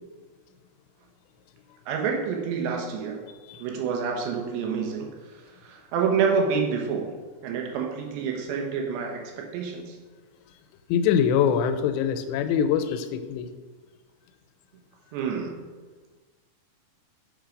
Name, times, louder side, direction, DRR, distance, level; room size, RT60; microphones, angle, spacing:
voice 1, 1.9-3.2 3.6-5.1 5.6-7.2 7.4-10.0 15.1-15.5, right 6 dB, 85° right, 1 dB, 3.2 m, -28 dB
voice 2, 10.9-13.5, left 8 dB, 85° left, 8 dB, 2.8 m, -24 dB
6.6 x 5.7 x 5.1 m, 1.4 s
omnidirectional pair, 5.0 m